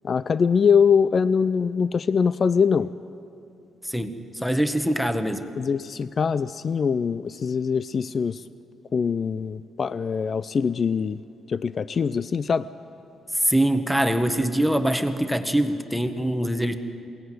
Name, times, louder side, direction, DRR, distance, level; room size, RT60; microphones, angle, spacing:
voice 1, 0.0-2.9 5.6-8.4 8.9-11.2 11.5-12.7, left 6 dB, 50° left, 16 dB, 0.4 m, -23 dB
voice 2, 3.8-5.5 13.4-16.7, right 1 dB, ahead, 8 dB, 1.5 m, -23 dB
22.0 x 17.5 x 9.3 m, 2.7 s
supercardioid pair, 60°, 0 cm